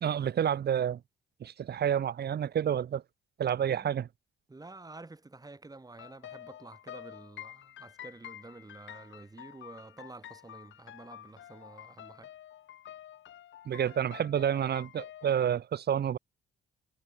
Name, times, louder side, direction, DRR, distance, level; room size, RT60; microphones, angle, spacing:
voice 1, 0.0-1.0 1.4-3.0 3.4-4.1 13.6-16.2, right 9 dB, 55° right, 1.6 m, -29 dB
voice 2, 4.5-12.3, right 2 dB, 20° right, 5.8 m, -49 dB
sound 1, 6.0-15.3, left 11 dB, 75° left, 3.3 m, -49 dB
cardioid pair, 90°, 20 cm